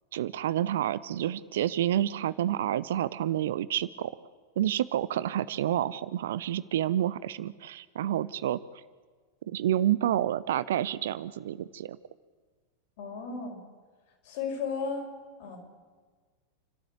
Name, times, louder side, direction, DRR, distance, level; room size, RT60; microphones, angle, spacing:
voice 1, 0.1-4.1 4.6-8.6 9.5-12.0, right 11 dB, 60° right, 17 dB, 0.7 m, -29 dB
voice 2, 13.0-13.6 14.2-15.1 15.4-15.6, left 5 dB, 50° left, 2 dB, 5.7 m, -34 dB
29.0 x 13.0 x 8.2 m, 1.5 s
figure-of-eight pair, 90°, 0 cm